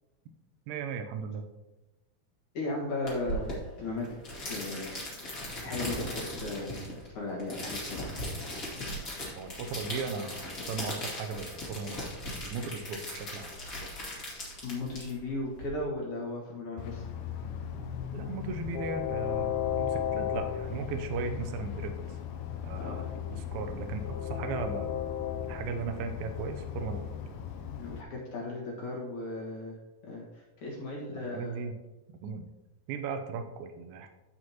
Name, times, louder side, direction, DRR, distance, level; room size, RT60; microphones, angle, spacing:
voice 1, 0.7-1.5 9.4-12.1 12.4-14.0 18.1-22.0 22.6-25.0 25.4-27.1 31.3-31.8 32.2-32.4 32.9-34.1, right 5 dB, 80° right, 6 dB, 2.4 m, -37 dB
voice 2, 2.5-4.1 4.4-5.0 5.3-8.1 14.6-17.1 22.7-23.0 27.8-29.8 30.0-31.6, left 2 dB, 60° left, -3 dB, 2.6 m, -36 dB
sound 1, 3.1-15.7, left 1 dB, 30° left, 1.9 m, -39 dB
Train, 16.8-28.0, left 9 dB, 80° left, 2.4 m, -35 dB
14.0 x 4.9 x 2.9 m, 1.0 s
omnidirectional pair, 4.5 m